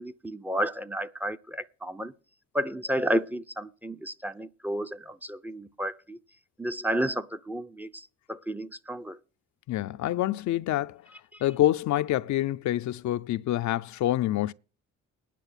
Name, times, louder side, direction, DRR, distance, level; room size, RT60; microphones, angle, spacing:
voice 1, 0.0-2.1 2.5-6.2 6.6-9.2, right 1 dB, 5° right, 0.6 m, -32 dB
voice 2, 9.7-11.0 11.4-14.5, left 14 dB, 70° left, 0.5 m, -26 dB
10.0 x 6.4 x 8.0 m
cardioid pair, 90°, 30 cm